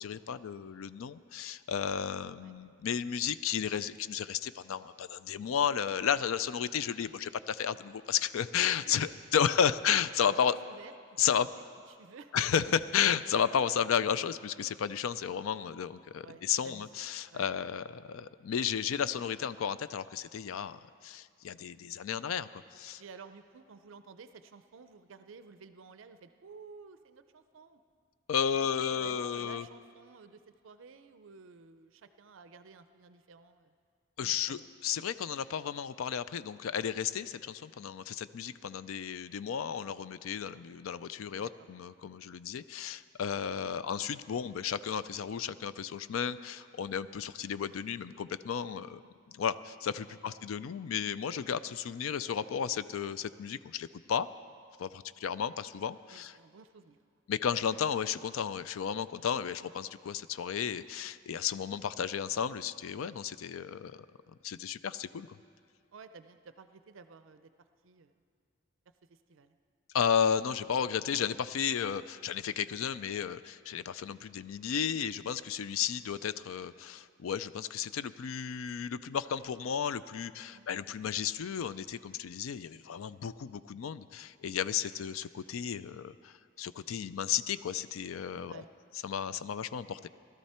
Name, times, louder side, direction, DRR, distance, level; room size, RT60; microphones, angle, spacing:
voice 1, 0.0-10.5 11.2-11.5 12.3-23.0 28.3-29.7 34.2-49.0 49.3-54.3 54.8-56.3 57.3-64.1 64.4-65.4 69.9-88.6 89.0-90.1, left 8 dB, 85° left, 15 dB, 0.4 m, -33 dB
voice 2, 8.6-9.2 9.6-9.9 10.5-11.5 11.9-12.3 16.2-17.0 17.3-17.5 23.0-27.8 28.5-33.7 34.2-34.7 41.4-41.5 50.2-50.4 56.1-57.0 65.9-67.5 67.8-68.1 69.1-69.5 80.5-80.7 84.6-84.7 88.4-88.7, right 5 dB, 70° right, 10 dB, 0.5 m, -53 dB
17.0 x 13.0 x 4.3 m, 2.2 s
head